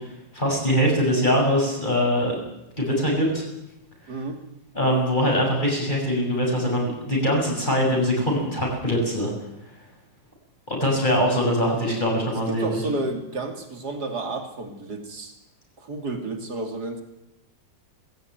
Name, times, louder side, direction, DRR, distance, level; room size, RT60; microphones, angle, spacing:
voice 1, 0.3-2.4 2.8-3.4 4.7-9.3 10.7-12.8, equal, 25° left, 0 dB, 6.8 m, -22 dB
voice 2, 4.1-4.4 12.5-15.3 15.8-17.0, right 2 dB, 60° right, 5 dB, 3.2 m, -31 dB
20.0 x 16.0 x 9.5 m, 0.88 s
omnidirectional pair, 2.0 m